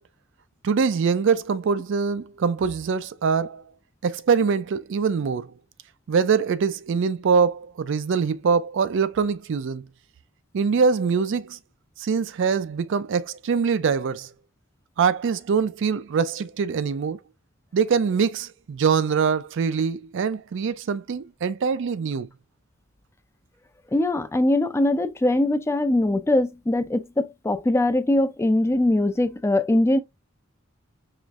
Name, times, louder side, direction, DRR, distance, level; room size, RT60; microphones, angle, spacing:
voice 1, 0.6-3.6 4.0-5.5 6.1-9.8 10.5-11.6 12.0-14.3 15.0-17.2 17.7-22.3, right 5 dB, 65° right, 0.4 m, -23 dB
voice 2, 23.9-30.0, left 1 dB, 15° left, 0.4 m, -22 dB
4.9 x 3.1 x 2.4 m
head